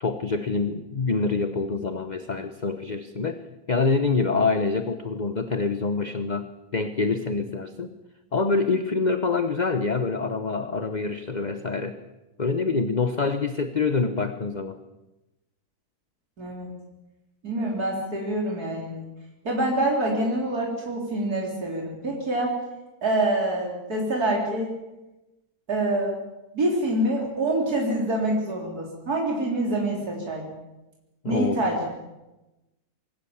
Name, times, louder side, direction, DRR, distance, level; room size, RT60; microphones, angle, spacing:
voice 1, 0.0-3.4 3.7-7.9 8.3-12.0 12.4-14.8 31.2-31.6, left 4 dB, 30° left, 9 dB, 1.1 m, -26 dB
voice 2, 16.4-16.7 17.4-19.0 19.4-22.6 23.0-24.7 25.7-26.2 26.5-30.4 31.3-31.9, right 1 dB, 75° right, -1 dB, 4.4 m, -26 dB
25.0 x 22.0 x 7.3 m, 1.0 s
omnidirectional pair, 1.6 m